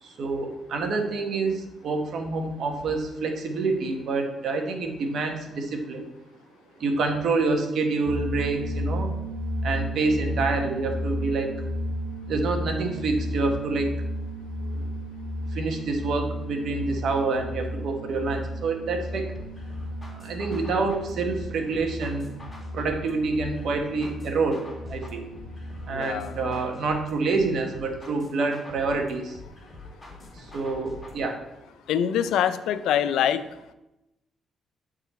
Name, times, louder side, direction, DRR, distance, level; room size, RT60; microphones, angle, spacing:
voice 1, 0.0-6.1 6.8-9.1 9.6-11.5 12.3-14.0 14.6-14.9 15.5-19.3 20.1-22.3 22.7-24.6 24.9-25.3 25.9-29.4 30.3-31.4, right 3 dB, 65° right, 4 dB, 1.1 m, -27 dB
sound 1, 8.0-26.7, equal, 35° right, 2.3 m, -33 dB
sound 2, 19.3-31.3, left 2 dB, 15° left, 1.8 m, -46 dB
voice 2, 25.9-26.3 31.9-33.4, left 9 dB, 85° left, 13 dB, 0.3 m, -24 dB
8.1 x 3.8 x 4.2 m, 0.94 s
cardioid pair, 90°, 0 cm